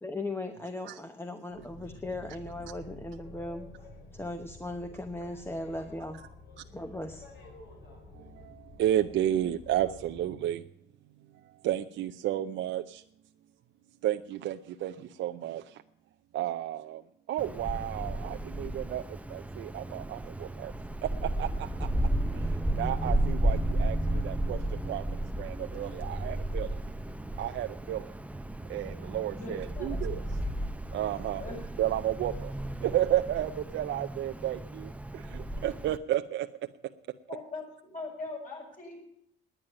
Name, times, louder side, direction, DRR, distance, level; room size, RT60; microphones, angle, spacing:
voice 1, 0.0-3.7 4.1-6.2 6.7-7.3, left 2 dB, 10° left, 7 dB, 1.0 m, -38 dB
Boat Water vehicle, 1.5-10.3, left 2 dB, 65° left, 4.6 m, -50 dB
voice 2, 8.1-10.6 11.3-13.0 14.0-15.8 16.3-17.0 17.3-20.7 21.0-21.9 22.3-25.0 25.3-26.8 27.4-28.2 28.7-30.2 30.9-31.4 31.8-32.5 32.8-36.5, right 12 dB, 70° right, 6 dB, 0.6 m, -32 dB
Wind, 17.4-36.0, right 1 dB, 5° right, 0.6 m, -33 dB
voice 3, 29.4-30.3 31.4-31.6 37.3-37.6 37.9-39.1, left 3 dB, 45° left, -1 dB, 7.4 m, -41 dB
10.5 x 9.1 x 8.8 m, 0.74 s
cardioid pair, 90°, 20 cm